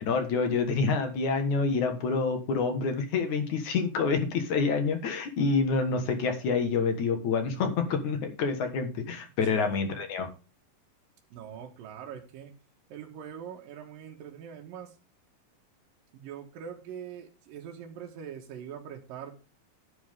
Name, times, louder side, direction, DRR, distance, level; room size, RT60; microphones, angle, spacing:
voice 1, 0.0-10.3, left 4 dB, 60° left, 6 dB, 2.7 m, -27 dB
voice 2, 9.5-9.9 11.3-12.5 12.9-15.0 16.1-19.3, right 8 dB, 70° right, 1 dB, 3.1 m, -43 dB
11.0 x 10.5 x 3.6 m, 0.32 s
omnidirectional pair, 4.2 m